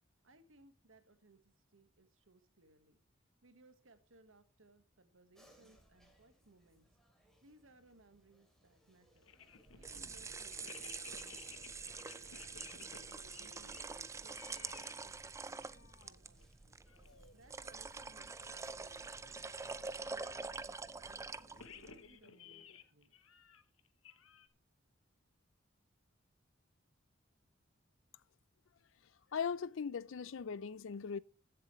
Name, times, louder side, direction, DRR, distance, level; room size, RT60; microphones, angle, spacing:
voice 1, 0.2-3.0 3.4-6.9 7.4-9.3 9.7-11.7 12.3-16.8 17.3-21.3 21.7-23.2, right 2 dB, 75° right, 1.5 m, -66 dB
sound 1, 5.3-20.5, equal, ahead, 2.9 m, -72 dB
sound 2, 9.2-15.0 15.2-16.1 16.4-16.5 16.9-17.3 17.6-17.7 18.2-19.5 21.4-24.5, left 7 dB, 85° left, 1.1 m, -57 dB
sound 3, 9.6-22.0, right 4 dB, 15° right, 0.4 m, -46 dB
voice 2, 29.3-31.2, left 6 dB, 70° left, 0.5 m, -39 dB
15.0 x 7.7 x 3.1 m
head